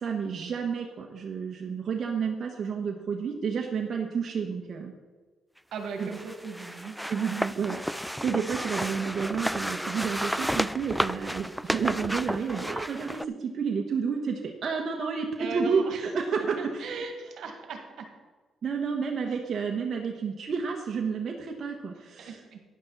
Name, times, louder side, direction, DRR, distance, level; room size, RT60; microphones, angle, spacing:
voice 1, 0.0-4.9 6.0-6.1 7.1-16.9 18.6-22.4, right 6 dB, 50° right, 1 dB, 1.3 m, -30 dB
voice 2, 5.7-6.9 15.4-16.1 16.6-18.1 19.3-19.4 22.2-22.6, right 4 dB, 70° right, 4 dB, 1.9 m, -38 dB
sound 1, 6.0-13.3, equal, ahead, 0.3 m, -32 dB
12.5 x 10.5 x 4.1 m, 1.4 s
cardioid pair, 90°, 0 cm